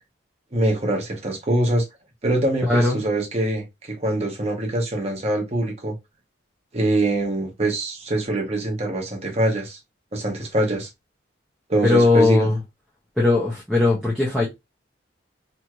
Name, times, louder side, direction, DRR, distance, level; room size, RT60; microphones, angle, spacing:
voice 1, 0.5-1.8 2.2-5.9 6.7-9.8 10.1-10.9 11.7-12.5, right 1 dB, 35° right, 0.9 m, -23 dB
voice 2, 2.7-3.0 11.8-12.6 13.2-14.5, left 3 dB, ahead, 0.7 m, -19 dB
3.0 x 2.7 x 2.3 m
head